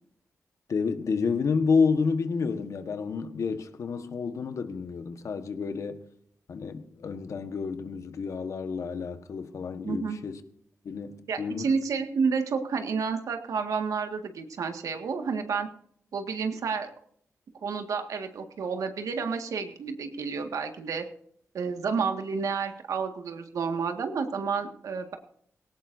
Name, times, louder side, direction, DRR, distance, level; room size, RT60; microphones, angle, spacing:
voice 1, 0.7-6.0 6.5-10.4 10.8-11.7, left 5 dB, 70° left, 1.4 m, -29 dB
voice 2, 9.8-10.2 11.3-15.7 16.1-16.9 17.6-21.0 21.5-25.2, right 5 dB, 90° right, 1.9 m, -30 dB
19.0 x 17.5 x 2.7 m
wide cardioid pair, 95°, 6 cm